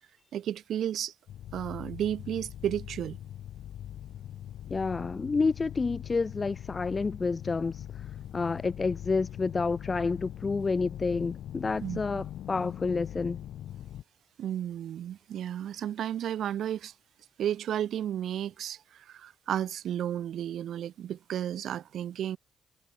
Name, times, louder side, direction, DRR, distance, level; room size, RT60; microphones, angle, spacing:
voice 1, 0.3-1.1 1.5-3.2 11.8-12.2 14.4-16.9 17.4-22.4, right 10 dB, 70° right, 0.4 m, -33 dB
sound 1, 1.3-14.0, left 11 dB, 75° left, 0.5 m, -41 dB
voice 2, 4.7-7.8 8.3-13.4, left 4 dB, 30° left, 0.6 m, -29 dB
cardioid pair, 90°, 0 cm